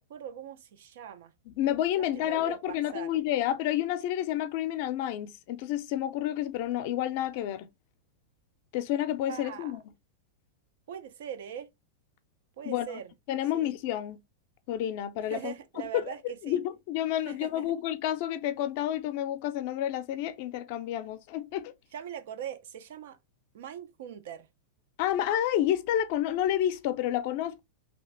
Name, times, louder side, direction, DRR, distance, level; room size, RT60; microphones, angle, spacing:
voice 1, 0.0-1.3 2.0-3.1 9.3-9.8 10.9-11.7 12.6-13.1 13.5-13.8 15.2-16.6 17.3-17.7 21.9-23.2 23.5-24.5, right 9 dB, 70° right, 0.5 m, -41 dB
voice 2, 1.6-7.7 8.7-9.8 12.6-12.9 13.3-14.2 14.7-15.5 15.9-16.1 16.4-21.7 25.0-27.6, left 12 dB, 55° left, 0.4 m, -30 dB
2.8 x 2.5 x 3.2 m
hypercardioid pair, 135°, 0 cm